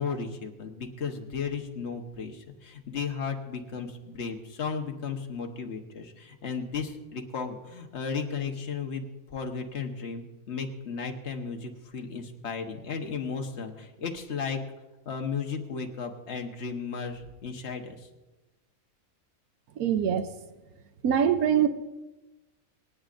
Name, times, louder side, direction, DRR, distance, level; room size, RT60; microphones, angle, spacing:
voice 1, 0.0-14.6 15.0-18.1, left 5 dB, 50° left, 3 dB, 1.5 m, -35 dB
voice 2, 19.8-20.2 21.0-21.7, right 8 dB, 90° right, 9 dB, 1.2 m, -23 dB
27.5 x 9.5 x 2.6 m, 1.1 s
omnidirectional pair, 1.5 m